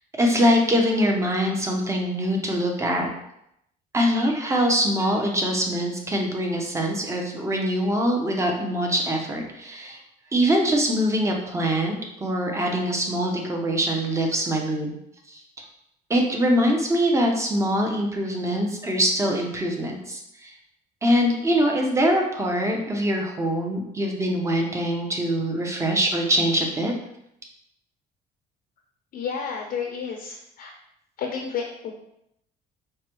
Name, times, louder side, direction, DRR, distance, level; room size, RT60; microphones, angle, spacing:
voice 1, 0.2-3.1 3.9-10.0 10.3-14.9 15.3-15.4 16.1-20.5 21.0-26.9, equal, 15° right, 1 dB, 0.7 m, -23 dB
voice 2, 29.1-30.7 31.2-31.9, left 6 dB, 60° left, 1 dB, 0.5 m, -31 dB
4.7 x 2.2 x 3.0 m, 0.77 s
cardioid pair, 110°, 17 cm